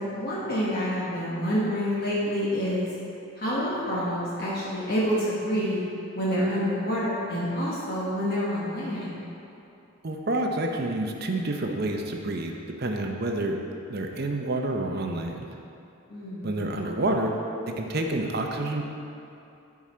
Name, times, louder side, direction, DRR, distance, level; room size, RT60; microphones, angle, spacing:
voice 1, 0.0-2.9 3.4-5.8 6.1-9.2 16.1-16.5, equal, 45° left, -7 dB, 1.3 m, -27 dB
voice 2, 10.0-12.5 12.8-13.6 13.9-15.5 16.4-17.3 17.7-18.8, right 2 dB, 45° right, 2 dB, 0.6 m, -28 dB
11.0 x 4.8 x 4.3 m, 2.7 s
head